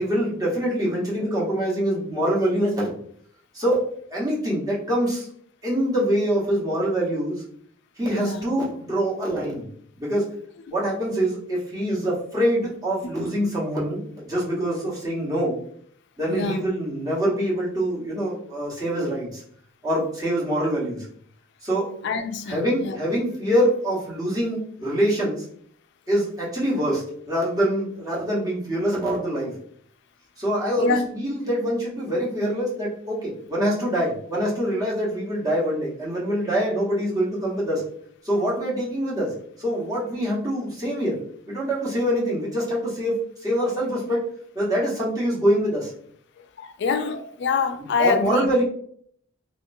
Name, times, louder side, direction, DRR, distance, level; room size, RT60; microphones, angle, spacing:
voice 1, 0.0-2.9 3.5-5.3 5.6-7.4 8.0-9.7 10.0-10.3 10.7-15.6 16.2-19.4 19.8-21.1 21.6-21.9 22.5-25.5 26.1-29.5 30.4-37.8 38.2-41.2 41.5-44.3 44.5-45.9 48.0-48.6, equal, 20° right, 1.1 m, -25 dB
voice 2, 8.1-8.4 13.2-13.3 16.3-16.6 22.0-23.0 30.8-31.1 46.6-48.5, left 5 dB, 60° left, 0.4 m, -25 dB
3.1 x 2.8 x 2.6 m
head